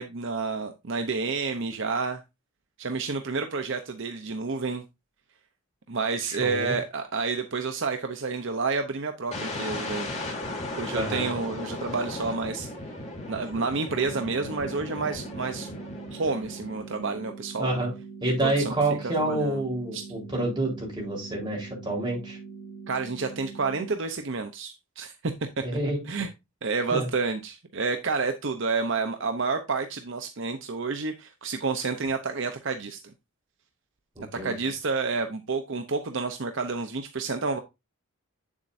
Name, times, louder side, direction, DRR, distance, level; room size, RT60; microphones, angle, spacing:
voice 1, 0.0-2.2 2.8-4.8 5.9-10.1 10.8-12.7 13.3-15.7 16.1-17.7 18.4-18.7 19.0-19.6 19.9-20.0 22.9-25.6 26.1-26.3 26.6-33.0 34.3-37.6, right 4 dB, 55° right, 6 dB, 0.7 m, -29 dB
voice 2, 6.2-6.8 10.9-11.3 17.6-17.9 18.2-22.4 25.6-26.0 26.9-27.1 34.2-34.7, right 2 dB, 20° right, -2 dB, 3.9 m, -28 dB
sound 1, 9.3-17.2, left 2 dB, 30° left, 3.2 m, -36 dB
sound 2, 13.9-23.9, right 5 dB, 50° left, 1.5 m, -43 dB
8.6 x 7.3 x 2.6 m, 0.24 s
head